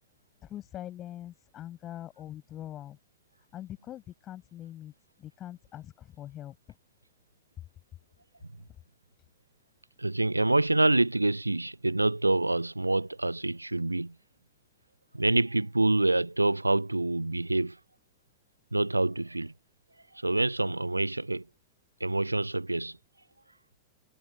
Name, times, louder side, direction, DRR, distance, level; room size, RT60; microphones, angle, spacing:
voice 1, 0.4-3.0 3.5-4.9 5.2-6.5 8.6-8.7, left 12 dB, 30° left, 6.3 m, -43 dB
voice 2, 10.0-14.1 15.1-17.8 18.7-19.5 20.1-21.5 22.0-23.0, right 2 dB, 85° right, 0.7 m, -26 dB
figure-of-eight pair, 90°, 0 cm